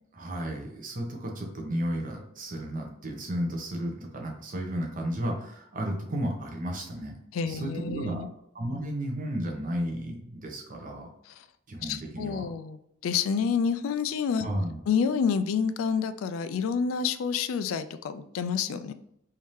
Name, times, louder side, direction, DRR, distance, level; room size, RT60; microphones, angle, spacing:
voice 1, 0.1-7.1 7.5-8.3 8.5-11.1 11.7-12.5 14.4-14.8, equal, 40° right, 1 dB, 0.8 m, -33 dB
voice 2, 7.3-8.3 11.3-11.4 11.8-14.5 14.9-18.9, left 6 dB, 85° left, 12 dB, 0.3 m, -28 dB
3.5 x 2.7 x 3.1 m, 0.76 s
head